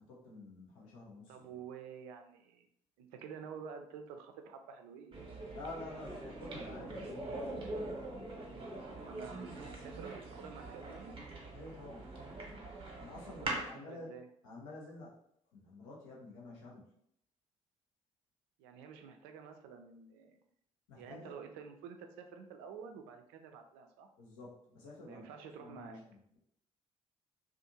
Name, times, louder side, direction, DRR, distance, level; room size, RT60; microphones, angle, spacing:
voice 1, 0.0-1.4 5.5-7.9 11.5-12.1 13.0-14.1 14.4-15.2 15.5-16.9 20.9-21.3 24.2-25.3 25.6-26.4, left 2 dB, 75° left, -4 dB, 0.7 m, -50 dB
voice 2, 1.3-2.7 3.0-5.2 9.0-11.2 13.4-14.3 18.6-20.4 20.9-24.1 25.1-26.0, right 6 dB, 70° right, 5 dB, 0.4 m, -49 dB
sound 1, 5.1-13.7, right 2 dB, 35° right, 0.9 m, -43 dB
2.5 x 2.4 x 2.6 m, 0.70 s
figure-of-eight pair, 45°, 17 cm